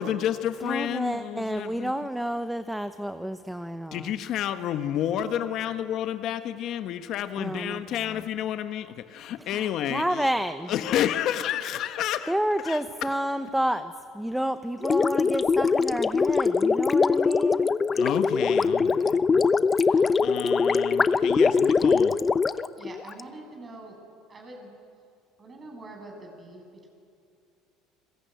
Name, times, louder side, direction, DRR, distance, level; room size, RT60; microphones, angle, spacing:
voice 1, 0.0-1.9 3.9-10.3 10.7-12.3 12.6-12.8 17.9-22.1, left 10 dB, 55° left, 9 dB, 1.3 m, -30 dB
voice 2, 0.6-4.1 7.4-8.2 9.4-10.7 12.3-17.7, right 1 dB, 5° right, 10 dB, 0.9 m, -30 dB
Gurgling, 14.8-23.2, left 5 dB, 25° left, 0.7 m, -22 dB
voice 3, 22.8-24.0 24.3-24.7 25.4-26.9, right 2 dB, 30° right, 2 dB, 7.6 m, -44 dB
29.5 x 21.0 x 9.3 m, 2.4 s
supercardioid pair, 115°, 0 cm